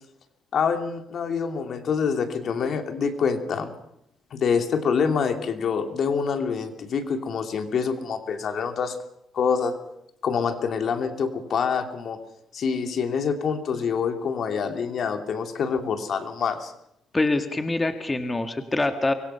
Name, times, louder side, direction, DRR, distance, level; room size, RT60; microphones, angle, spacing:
voice 1, 0.5-3.7 4.3-9.0 9.3-9.8 10.2-12.2 12.5-16.7, left 6 dB, 60° left, 6 dB, 2.9 m, -26 dB
voice 2, 17.1-19.1, left 2 dB, 20° left, 7 dB, 1.9 m, -25 dB
24.5 x 22.5 x 5.8 m, 0.77 s
cardioid pair, 90°, 0 cm